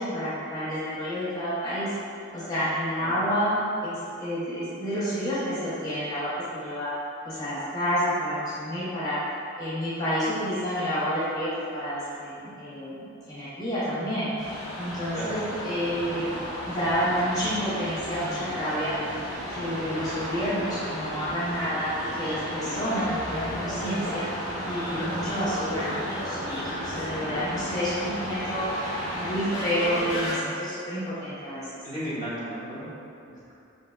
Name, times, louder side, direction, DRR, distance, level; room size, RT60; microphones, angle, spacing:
voice 1, 0.0-1.9 2.3-6.9 7.2-9.2 9.6-14.3 14.7-16.3 16.6-18.9 19.5-24.2 24.6-28.8 29.2-31.7, equal, 20° left, -12 dB, 0.8 m, -29 dB
sound 1, 14.4-30.4, equal, 5° right, 1.3 m, -33 dB
voice 2, 31.8-32.9, equal, 20° right, -12 dB, 1.1 m, -35 dB
4.7 x 2.7 x 2.3 m, 2.6 s
head